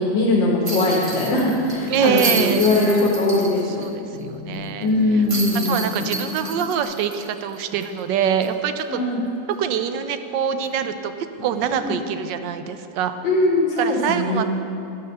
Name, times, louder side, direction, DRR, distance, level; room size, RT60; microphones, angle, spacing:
voice 1, 0.0-3.8 4.8-5.8 8.9-9.2 11.8-11.9 13.2-14.4, left 2 dB, 90° left, -4 dB, 1.9 m, -20 dB
sound 1, 0.5-6.8, left 5 dB, 65° left, 0.9 m, -36 dB
sound 2, 0.6-3.9 4.2-4.3 5.3-8.0 8.4-8.5 10.6-10.8, right 2 dB, 25° right, 0.7 m, -30 dB
voice 2, 1.9-2.7 3.8-5.2 5.6-9.0 9.5-11.1 11.4-13.1 13.8-14.4, right 8 dB, 80° right, 9 dB, 1.2 m, -24 dB
12.0 x 5.7 x 6.5 m, 2.7 s
omnidirectional pair, 2.0 m